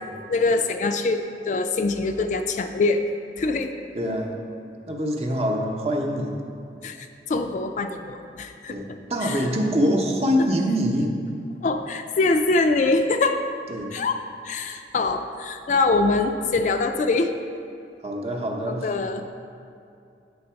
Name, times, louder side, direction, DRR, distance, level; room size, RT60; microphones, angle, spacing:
voice 1, 0.3-3.0 3.4-3.7 6.8-7.0 7.3-8.8 9.2-9.4 11.6-13.4 13.9-17.3 18.8-19.3, left 3 dB, 45° left, 7 dB, 0.3 m, -23 dB
voice 2, 3.9-4.3 4.9-6.4 8.7-11.1 13.7-13.9 18.0-18.9, equal, 35° right, 1 dB, 0.8 m, -24 dB
8.4 x 4.0 x 5.7 m, 2.5 s
head